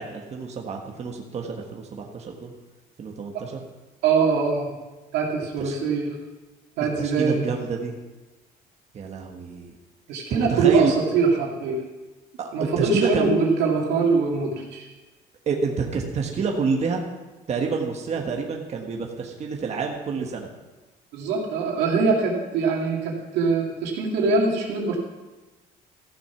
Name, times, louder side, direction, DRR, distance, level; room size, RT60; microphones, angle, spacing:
voice 1, 0.0-2.5 3.0-3.6 5.6-5.7 7.0-7.9 8.9-9.8 10.3-10.9 12.4-12.5 12.8-13.3 15.5-17.0 17.5-20.5, right 5 dB, 40° right, 1 dB, 1.4 m, -28 dB
voice 2, 4.0-4.7 5.1-6.2 6.8-7.5 10.1-11.8 12.5-14.9 21.1-25.0, right 4 dB, 90° right, -1 dB, 2.5 m, -23 dB
14.0 x 7.1 x 5.9 m, 1.2 s
cardioid pair, 110°, 17 cm